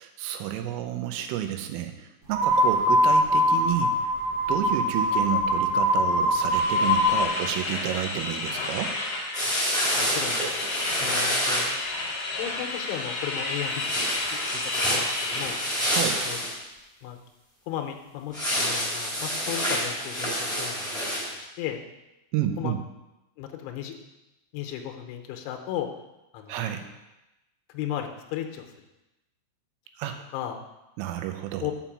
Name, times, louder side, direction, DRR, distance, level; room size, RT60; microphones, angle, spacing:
voice 1, 0.0-3.9 4.5-9.0 15.8-16.2 22.3-22.8 26.5-26.8 30.0-30.2 31.0-31.7, right 11 dB, 85° right, 7 dB, 3.3 m, -30 dB
sound 1, 2.3-7.3, equal, 65° right, 1.6 m, -22 dB
sound 2, 6.5-16.0, left 2 dB, 55° left, 1.8 m, -32 dB
sound 3, 9.3-11.7 13.7-16.5 18.3-21.3, equal, ahead, 2.2 m, -28 dB
voice 2, 10.0-10.6 11.0-11.7 12.4-14.1 14.5-14.6 14.9-15.6 16.2-16.4 17.0-17.2 17.7-21.1 21.6-21.8 22.6-22.7 23.4-23.9 24.5-25.9 26.3-26.5 27.7-28.7 30.3-30.6 31.6-31.7, left 11 dB, 80° left, 4 dB, 3.1 m, -35 dB
7.2 x 5.6 x 7.3 m, 0.98 s
omnidirectional pair, 5.8 m